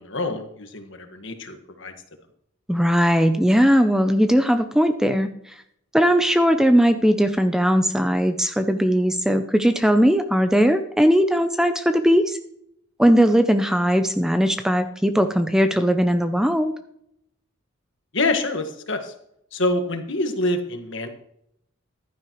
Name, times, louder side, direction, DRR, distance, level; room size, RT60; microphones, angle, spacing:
voice 1, 0.0-1.9 18.1-19.1 19.5-21.1, left 2 dB, 60° left, 6 dB, 1.6 m, -26 dB
voice 2, 2.7-5.6 5.9-12.4 13.0-16.7, equal, 5° right, 8 dB, 0.5 m, -19 dB
14.5 x 12.0 x 3.1 m, 0.74 s
head